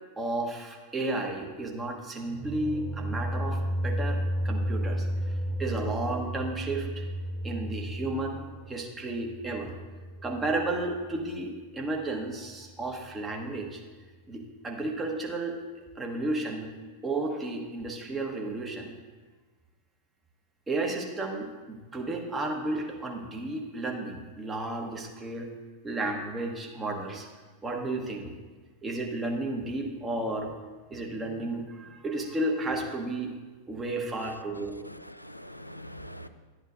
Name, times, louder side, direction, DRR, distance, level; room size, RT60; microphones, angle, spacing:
voice 1, 0.2-5.3 5.6-7.0 7.4-9.7 10.2-13.8 14.3-15.6 15.9-16.7 17.0-18.9 20.7-25.5 25.8-27.3 27.6-28.3 28.8-30.5 30.9-33.3 33.7-34.8, right 2 dB, 15° right, 1 dB, 1.2 m, -33 dB
sound 1, 2.2-11.1, equal, 40° right, 0.8 m, -33 dB
voice 2, 34.2-36.3, equal, 90° left, 10 dB, 0.3 m, -44 dB
12.0 x 8.8 x 2.5 m, 1.3 s
figure-of-eight pair, 90°, 0 cm